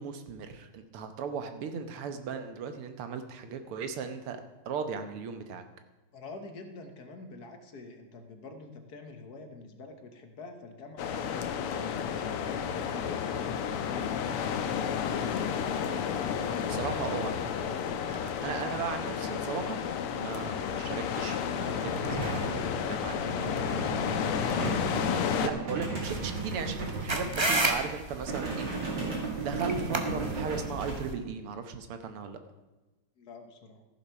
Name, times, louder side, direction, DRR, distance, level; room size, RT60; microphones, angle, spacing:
voice 1, 0.0-4.4 4.7-5.6 16.6-19.8 20.2-23.6 25.4-28.7 29.0-32.4, right 6 dB, 80° right, 8 dB, 1.9 m, -37 dB
voice 2, 6.1-15.7 23.4-24.5 33.2-33.8, left 3 dB, 50° left, 5 dB, 1.5 m, -46 dB
sound 1, 11.0-25.5, left 7 dB, 90° left, 1.8 m, -31 dB
sound 2, 21.6-27.7 28.1-30.9, right 3 dB, 55° right, 3.1 m, -35 dB
sound 3, 26.0-31.1, right 2 dB, 35° right, 0.4 m, -32 dB
14.0 x 7.3 x 5.7 m, 1.1 s
omnidirectional pair, 2.4 m